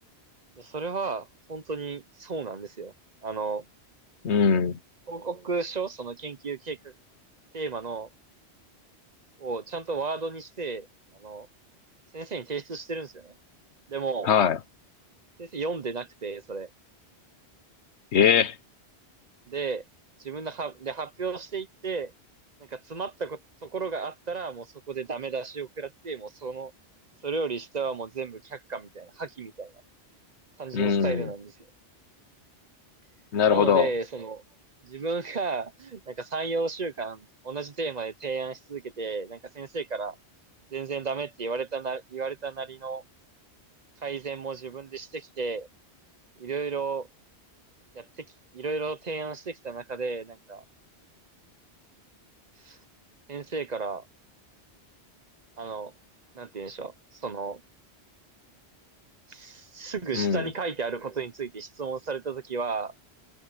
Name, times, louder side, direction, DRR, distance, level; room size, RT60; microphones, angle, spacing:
voice 1, 0.6-2.9 3.2-3.6 5.1-6.9 7.5-8.1 9.4-10.9 11.1-11.5 12.1-13.3 13.9-14.3 15.4-16.7 19.5-19.8 20.2-22.1 22.6-26.7 27.2-29.7 30.6-31.5 33.5-34.4 34.8-40.2 40.7-43.0 44.0-45.7 46.4-47.1 47.9-48.3 48.5-50.6 52.6-52.8 53.3-54.1 55.6-55.9 56.4-57.6 59.3-62.9, right 4 dB, 45° right, 0.9 m, -33 dB
voice 2, 4.2-4.8 14.2-14.6 18.1-18.6 30.7-31.3 33.3-33.9 60.1-60.5, left 7 dB, 85° left, 1.2 m, -21 dB
open air
omnidirectional pair, 1.1 m